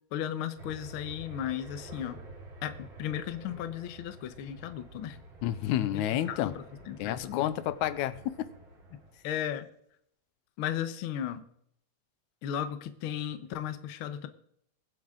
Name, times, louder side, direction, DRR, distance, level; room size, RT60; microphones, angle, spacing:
voice 1, 0.1-2.2 2.6-5.2 6.3-7.5 9.2-9.7 10.6-11.4 12.4-14.3, left 10 dB, 60° left, 10 dB, 1.4 m, -35 dB
sound 1, 0.6-9.3, right 2 dB, 45° right, 2.9 m, -49 dB
voice 2, 5.4-6.5 7.0-8.5, left 12 dB, 85° left, 14 dB, 2.0 m, -30 dB
22.0 x 7.8 x 3.8 m, 0.70 s
omnidirectional pair, 3.4 m